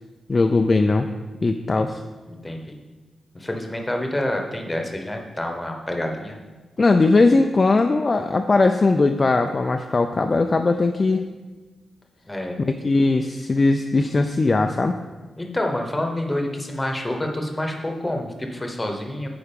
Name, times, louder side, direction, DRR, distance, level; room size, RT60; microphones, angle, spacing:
voice 1, 0.3-1.1 1.4-2.0 6.8-11.3 12.6-15.0, left 3 dB, 30° left, 5 dB, 0.3 m, -19 dB
voice 2, 2.3-2.8 3.3-6.4 12.3-12.6 15.4-19.3, left 1 dB, 10° left, 3 dB, 1.0 m, -28 dB
8.8 x 4.8 x 5.2 m, 1.3 s
wide cardioid pair, 140°, 0 cm